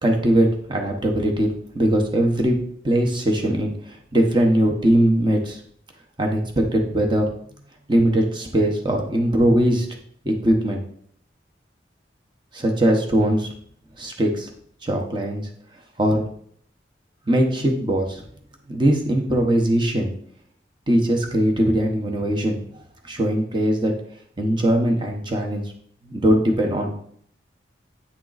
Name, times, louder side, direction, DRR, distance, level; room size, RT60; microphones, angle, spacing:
voice 1, 0.0-2.6 2.8-5.6 6.2-7.3 7.9-9.9 10.2-10.8 12.5-13.5 14.0-14.5 14.8-15.5 16.0-16.2 17.3-18.2 18.7-20.1 20.9-22.6 23.0-23.9 24.4-25.6 26.0-27.0, right 1 dB, 25° right, 2 dB, 1.0 m, -20 dB
8.7 x 3.7 x 4.0 m, 0.62 s
head